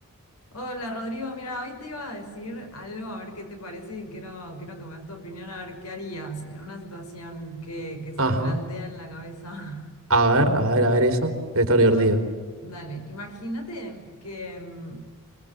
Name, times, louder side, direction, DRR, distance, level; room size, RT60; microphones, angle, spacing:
voice 1, 0.5-9.9 11.8-12.2 12.6-15.0, equal, 90° left, 5 dB, 5.6 m, -36 dB
voice 2, 8.2-8.6 10.1-12.2, right 1 dB, 65° right, 6 dB, 3.8 m, -20 dB
25.5 x 21.5 x 9.3 m, 1.5 s
head